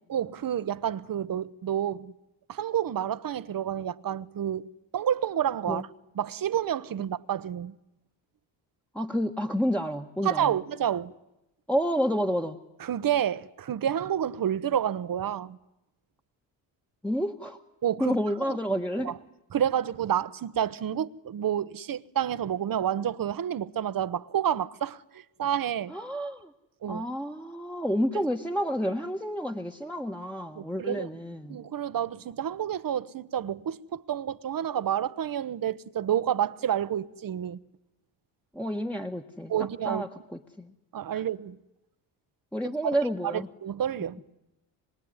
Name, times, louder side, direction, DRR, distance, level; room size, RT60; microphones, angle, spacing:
voice 1, 0.1-2.1 2.5-4.7 4.9-5.9 6.2-7.7 10.2-11.1 12.8-15.6 17.8-18.2 18.5-18.6 19.0-19.2 19.5-25.9 26.8-27.0 30.6-31.1 31.5-37.6 39.5-40.0 40.9-41.6 43.2-44.2, right 10 dB, 45° right, 1.0 m, -29 dB
voice 2, 8.9-10.6 11.7-12.6 17.0-17.6 18.0-19.1 25.9-26.5 26.9-31.6 38.5-39.5 39.9-40.7 41.1-41.2 42.5-43.5, equal, 5° left, 1.4 m, -30 dB
25.5 x 22.0 x 9.7 m
supercardioid pair, 65°, 49 cm